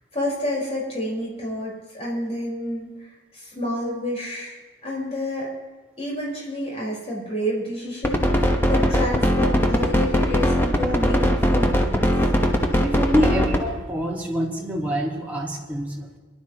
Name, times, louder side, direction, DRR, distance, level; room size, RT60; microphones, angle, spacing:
voice 1, 0.1-2.9 3.3-5.5 6.0-12.1, left 1 dB, 35° left, -4 dB, 4.9 m, -29 dB
sound 1, 8.0-13.6, equal, 10° left, 1.2 m, -19 dB
voice 2, 12.8-16.2, equal, 10° right, -3 dB, 2.0 m, -25 dB
23.5 x 12.0 x 3.1 m, 1.4 s
head